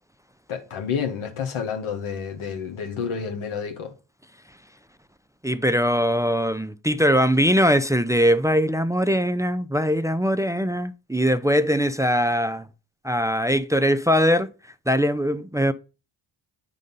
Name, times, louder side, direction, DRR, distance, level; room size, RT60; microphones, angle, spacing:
voice 1, 0.5-3.9, left 7 dB, 90° left, 1.6 m, -29 dB
voice 2, 5.4-12.6 13.0-14.5 14.9-15.7, equal, 5° right, 0.6 m, -21 dB
8.3 x 3.8 x 5.4 m
cardioid pair, 55°, 48 cm